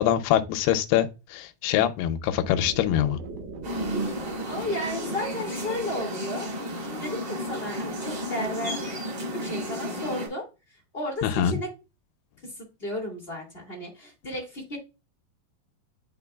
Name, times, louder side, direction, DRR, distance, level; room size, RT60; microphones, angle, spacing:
voice 1, 0.0-3.2 11.2-11.6, left 11 dB, 85° left, 2.7 m, -24 dB
sound 1, 2.4-8.6, right 3 dB, 65° right, 3.1 m, -43 dB
sound 2, 3.6-10.3, equal, 40° right, 3.8 m, -32 dB
voice 2, 4.4-9.0 9.3-11.7 12.4-14.8, left 1 dB, 35° left, 0.9 m, -34 dB
10.5 x 4.4 x 2.3 m
omnidirectional pair, 4.5 m